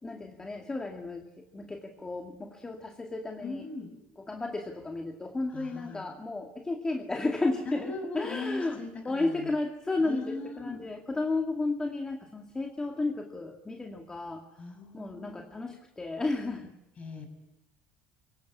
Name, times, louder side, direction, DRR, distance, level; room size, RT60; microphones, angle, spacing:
voice 1, 0.0-3.6 4.2-16.7, left 2 dB, 15° left, 3 dB, 2.1 m, -33 dB
voice 2, 3.4-3.9 5.5-6.1 7.6-9.5 10.0-10.9 14.6-15.4 17.0-17.3, left 3 dB, 30° left, 7 dB, 6.4 m, -39 dB
24.0 x 17.0 x 9.8 m, 0.93 s
supercardioid pair, 115°, 4 cm